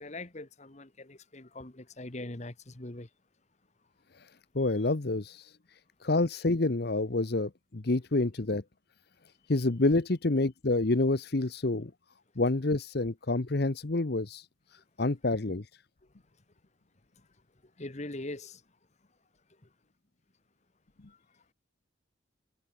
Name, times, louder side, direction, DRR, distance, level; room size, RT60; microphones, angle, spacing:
voice 1, 0.0-3.1 17.8-18.6 21.1-21.2, left 2 dB, 35° left, 1.4 m, -42 dB
voice 2, 4.5-5.5 6.0-8.6 9.5-11.9 12.4-14.5 15.0-15.7, left 2 dB, 55° left, 0.9 m, -28 dB
head